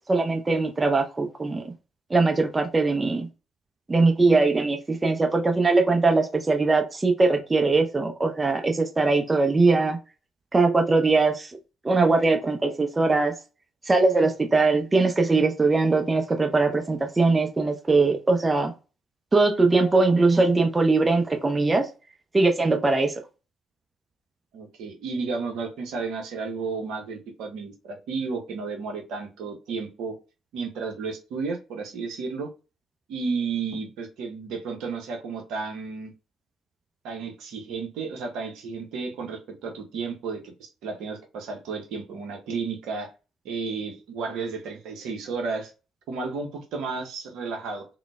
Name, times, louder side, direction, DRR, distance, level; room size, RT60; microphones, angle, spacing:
voice 1, 0.1-1.7 2.1-3.3 3.9-10.0 10.5-11.5 11.8-13.3 13.9-18.7 19.3-21.9 22.3-23.1, right 3 dB, 25° right, 0.7 m, -21 dB
voice 2, 24.5-30.1 30.5-32.5 33.1-36.1 37.0-43.1 43.4-45.7 46.1-47.9, right 4 dB, 65° right, 0.8 m, -32 dB
3.7 x 2.1 x 2.3 m
hypercardioid pair, 45°, 0 cm